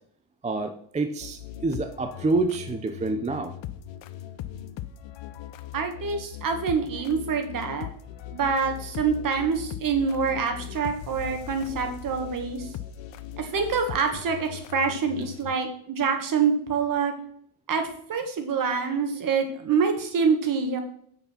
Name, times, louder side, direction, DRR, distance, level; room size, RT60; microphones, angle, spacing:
voice 1, 0.4-3.5, right 3 dB, 15° right, 7 dB, 0.4 m, -27 dB
sound 1, 1.2-15.6, left 11 dB, 75° left, 0.8 m, -39 dB
voice 2, 5.7-7.9 8.3-12.7 13.4-17.1 17.7-20.8, right 5 dB, 45° right, 5 dB, 1.7 m, -26 dB
8.1 x 6.8 x 5.7 m, 0.63 s
cardioid pair, 175°, 46 cm